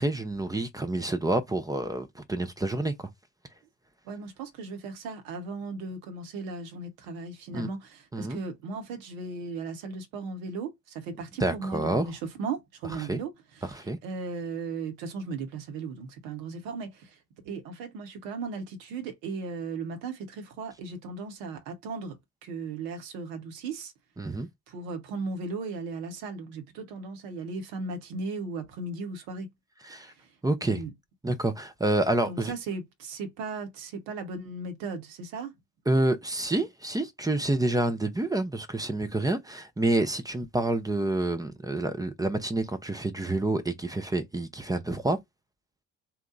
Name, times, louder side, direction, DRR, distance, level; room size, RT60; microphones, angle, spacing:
voice 1, 0.0-3.1 7.5-7.7 8.1-8.4 11.4-12.1 13.1-13.2 13.7-14.0 24.2-24.5 29.9-30.1 30.4-30.8 31.2-32.5 35.9-45.2, right 2 dB, 10° right, 0.6 m, -28 dB
voice 2, 4.0-23.9 24.7-29.5 30.0-30.3 30.7-30.9 32.3-35.5, right 4 dB, 65° right, 1.0 m, -37 dB
2.9 x 2.2 x 3.8 m
figure-of-eight pair, 45°, 38 cm